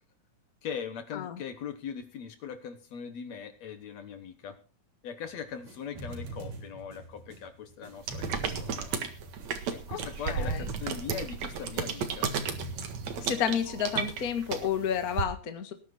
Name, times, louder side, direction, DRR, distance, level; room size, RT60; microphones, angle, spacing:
voice 1, 0.6-4.6 5.0-9.0 9.7-12.3, left 7 dB, 65° left, 9 dB, 2.2 m, -40 dB
sound 1, 5.3-13.4, right 2 dB, 85° right, 5.1 m, -43 dB
sound 2, 8.0-15.2, right 6 dB, 60° right, 2.8 m, -34 dB
voice 2, 10.3-10.6 13.2-15.7, left 8 dB, 35° left, 7 dB, 1.6 m, -31 dB
19.0 x 10.0 x 4.4 m, 0.36 s
omnidirectional pair, 3.7 m